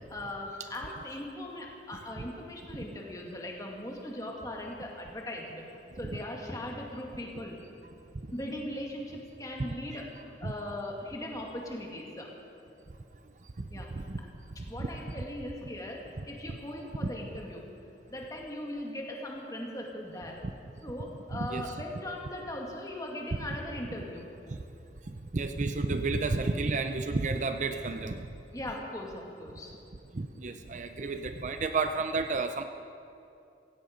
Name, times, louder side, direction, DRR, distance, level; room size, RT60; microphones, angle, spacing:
voice 1, 0.1-5.6 6.0-7.6 8.3-12.3 13.7-14.1 14.7-17.6 18.1-20.4 20.8-24.3 28.5-29.7, left 1 dB, 20° left, -1 dB, 2.1 m, -39 dB
voice 2, 13.6-14.3 14.8-14.9 17.0-17.1 20.4-20.5 21.3-21.8 24.5-24.6 25.1-28.3 30.1-32.6, right 3 dB, 45° right, 8 dB, 0.6 m, -31 dB
16.5 x 16.0 x 5.2 m, 2.6 s
head